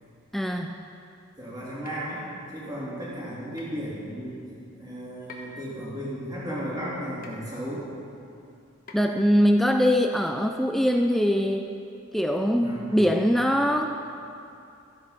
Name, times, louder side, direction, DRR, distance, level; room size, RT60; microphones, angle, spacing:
voice 1, 0.3-0.8 8.9-11.7 12.1-13.9, equal, ahead, 4 dB, 0.3 m, -22 dB
voice 2, 1.4-2.3 2.5-4.5 4.7-7.9 12.5-13.0, equal, 20° right, -8 dB, 3.0 m, -35 dB
sound 1, 1.8-2.0 3.6-3.8 5.3-5.7 7.2-7.5 8.9-9.2, left 2 dB, 40° left, 1.2 m, -45 dB
13.5 x 8.3 x 5.2 m, 2.6 s
head